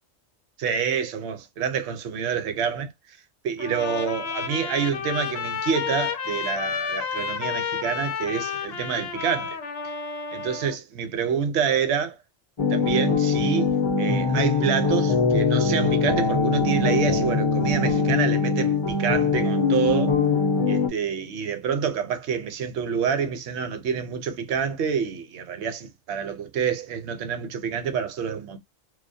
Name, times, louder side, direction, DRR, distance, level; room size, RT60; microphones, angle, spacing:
voice 1, 0.6-2.9 3.4-9.6 10.3-12.2 12.7-13.7 14.0-20.2 20.7-28.6, right 7 dB, 70° right, 0.9 m, -27 dB
Trumpet, 3.6-10.8, left 6 dB, 65° left, 0.8 m, -31 dB
sound 1, 12.6-20.9, left 4 dB, 40° left, 0.4 m, -22 dB
2.3 x 2.0 x 2.6 m
omnidirectional pair, 1.2 m